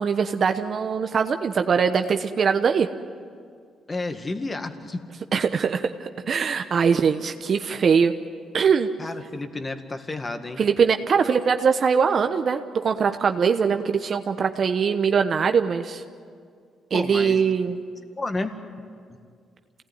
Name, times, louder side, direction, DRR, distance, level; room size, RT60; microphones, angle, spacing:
voice 1, 0.0-2.9 5.3-5.9 6.3-8.1 8.5-8.9 10.6-16.0 16.9-17.8, right 6 dB, 50° right, 7 dB, 1.0 m, -22 dB
voice 2, 3.9-5.0 9.0-10.6 16.9-17.4 18.2-18.6, left 2 dB, 25° left, 7 dB, 1.9 m, -31 dB
27.0 x 18.0 x 9.5 m, 2.1 s
cardioid pair, 90°, 0 cm